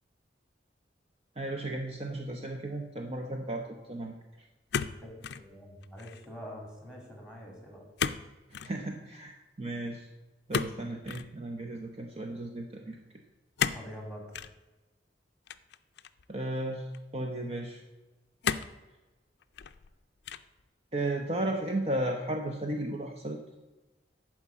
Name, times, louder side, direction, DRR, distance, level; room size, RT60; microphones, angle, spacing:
voice 1, 1.4-4.5 8.6-10.1 10.5-13.0 16.3-16.9 17.1-17.8 20.9-23.4, right 1 dB, 35° right, 3 dB, 0.8 m, -34 dB
sound 1, 4.7-5.5 5.8-6.3 8.0-8.3 8.5-8.8 10.5-11.3 13.6-13.9 14.3-14.5 15.5-16.2 16.9-17.0 18.4-18.8 19.4-19.9 20.2-20.6, left 7 dB, 65° left, 0.5 m, -33 dB
voice 2, 5.0-7.9 13.7-14.2, equal, 5° right, 0 dB, 2.7 m, -45 dB
11.0 x 4.7 x 7.3 m, 1.1 s
head